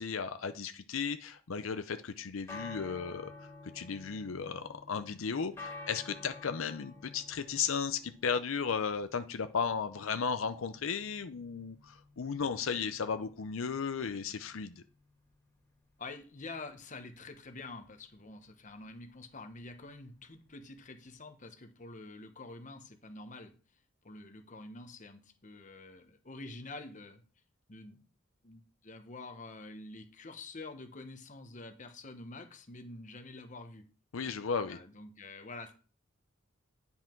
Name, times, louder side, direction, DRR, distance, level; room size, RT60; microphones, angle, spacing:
voice 1, 0.0-3.3 3.7-14.8 34.1-34.8, left 6 dB, 85° left, 10 dB, 0.6 m, -35 dB
sound 1, 2.1-21.2, left 3 dB, 15° left, 2.2 m, -52 dB
voice 2, 16.0-23.5 24.0-27.2 27.7-28.0 28.4-33.8 34.7-35.7, left 2 dB, 40° left, 7 dB, 1.1 m, -47 dB
9.9 x 5.6 x 4.5 m, 0.36 s
head